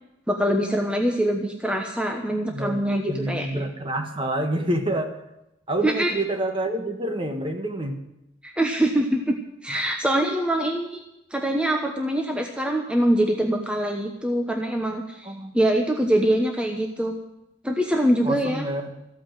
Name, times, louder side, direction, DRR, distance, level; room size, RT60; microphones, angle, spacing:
voice 1, 0.3-3.5 5.8-6.1 8.4-9.3 9.6-11.0 11.3-17.1 17.6-18.6, right 1 dB, 5° right, 3 dB, 1.0 m, -24 dB
voice 2, 2.5-5.2 5.7-8.0 9.7-9.9 15.2-15.6 18.2-18.9, right 1 dB, 30° right, 5 dB, 1.6 m, -28 dB
15.0 x 8.8 x 9.0 m, 0.88 s
head